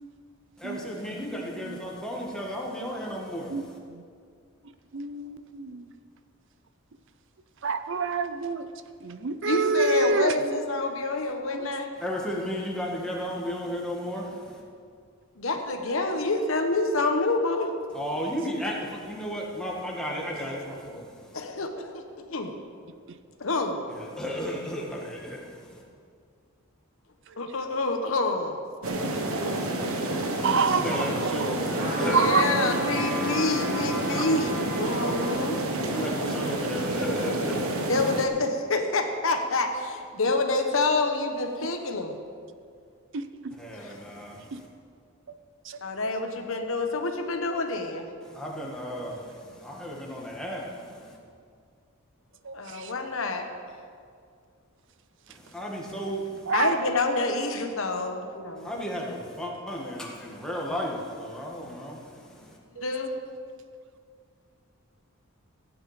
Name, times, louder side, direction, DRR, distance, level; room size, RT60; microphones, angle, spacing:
voice 1, 0.6-3.8 12.0-14.6 17.9-21.4 23.9-25.8 30.8-32.2 35.9-37.8 43.6-44.7 48.2-51.2 55.3-56.4 58.6-62.6, equal, 5° left, -3 dB, 1.8 m, -34 dB
voice 2, 1.4-1.8 3.5-3.6 4.9-5.9 7.6-8.7 9.0-10.5 11.5-11.7 16.1-16.2 30.4-31.3 32.1-32.5 34.1-34.2 43.1-43.2 45.7-45.8 52.5-52.9 56.5-56.8 62.8-62.9, right 4 dB, 60° right, 10 dB, 0.5 m, -27 dB
voice 3, 9.4-11.9 15.4-17.7 20.5-20.6 21.3-22.0 22.3-22.5 23.4-23.8 27.4-28.6 32.0-35.6 37.9-42.2 43.8-44.0 45.8-48.1 52.5-53.5 56.5-58.7 62.8-63.1, left 3 dB, 65° left, 5 dB, 1.1 m, -27 dB
sound 1, 28.8-38.3, right 1 dB, 80° right, 1.2 m, -29 dB
sound 2, 31.7-35.4 35.9-36.0, equal, 35° right, 3.0 m, -34 dB
15.0 x 9.1 x 5.1 m, 2.2 s
head